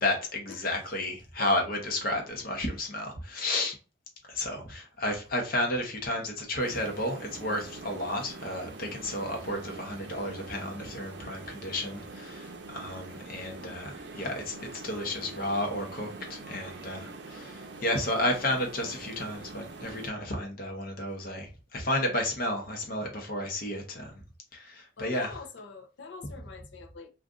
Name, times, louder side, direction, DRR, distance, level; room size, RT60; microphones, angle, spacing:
voice 1, 0.0-3.7 4.3-24.2 24.5-25.3, left 1 dB, 50° left, 0.9 m, -32 dB
sound 1, 6.6-20.1, right 3 dB, 65° right, 0.5 m, -44 dB
voice 2, 13.3-13.7 18.1-18.3 25.0-27.1, left 5 dB, 75° left, 0.6 m, -45 dB
2.5 x 2.5 x 3.5 m
head